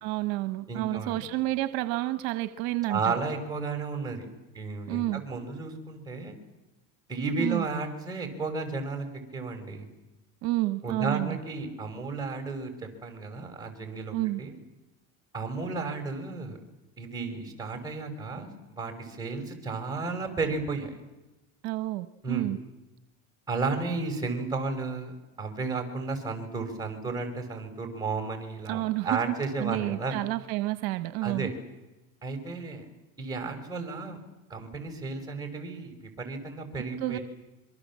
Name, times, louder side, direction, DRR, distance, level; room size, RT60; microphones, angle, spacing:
voice 1, 0.0-3.1 4.9-5.2 7.4-7.6 10.4-11.4 14.1-14.4 21.6-22.6 28.7-29.3 29.6-31.5 37.0-37.2, right 18 dB, 65° right, 12 dB, 1.1 m, -30 dB
voice 2, 0.7-1.2 2.9-4.3 4.5-6.4 7.1-9.1 9.3-9.9 10.8-14.6 15.3-16.6 17.0-21.0 22.2-22.5 23.5-25.1 25.4-30.2 31.2-31.6 32.2-32.8 33.2-34.2 34.5-37.2, right 3 dB, 10° right, 4 dB, 5.6 m, -33 dB
27.0 x 23.5 x 7.5 m, 1.0 s
cardioid pair, 135°, 39 cm